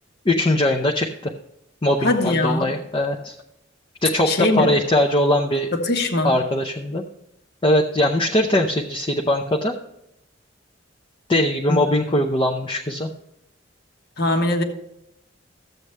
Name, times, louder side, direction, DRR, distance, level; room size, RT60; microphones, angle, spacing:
voice 1, 0.2-1.3 1.8-3.3 4.0-4.3 4.6-5.7 6.2-7.0 7.6-9.7 11.3-13.1, left 1 dB, 25° left, 1 dB, 0.7 m, -21 dB
voice 2, 2.0-2.7 4.3-4.7 5.7-6.3 11.7-11.8 12.1-12.2 14.2-14.6, left 2 dB, 60° left, 5 dB, 1.3 m, -21 dB
13.0 x 7.9 x 3.3 m, 0.83 s
head